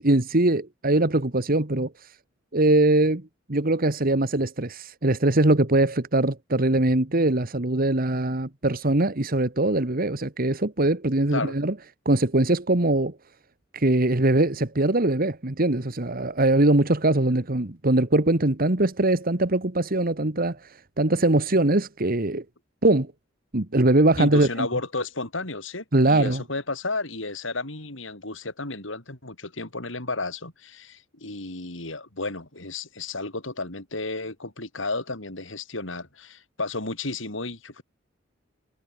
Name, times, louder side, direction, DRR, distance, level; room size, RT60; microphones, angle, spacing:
voice 1, 0.0-2.1 2.5-11.7 12.1-13.2 13.7-22.5 22.8-23.1 23.5-24.7 25.9-26.4, right 2 dB, 50° right, 1.7 m, -22 dB
voice 2, 24.2-37.8, left 3 dB, 80° left, 5.1 m, -32 dB
head